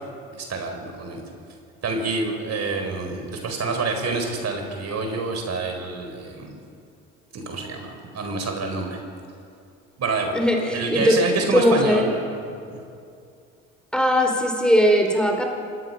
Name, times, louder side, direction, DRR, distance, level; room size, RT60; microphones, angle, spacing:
voice 1, 0.3-1.2 1.8-6.6 7.3-9.0 10.0-10.4 10.7-12.4 12.7-12.8, right 3 dB, 50° right, 4 dB, 4.5 m, -27 dB
voice 2, 10.3-11.2 11.5-12.1 13.9-15.4, equal, 5° left, 2 dB, 4.1 m, -19 dB
26.5 x 19.0 x 5.7 m, 2.5 s
hypercardioid pair, 65°, 34 cm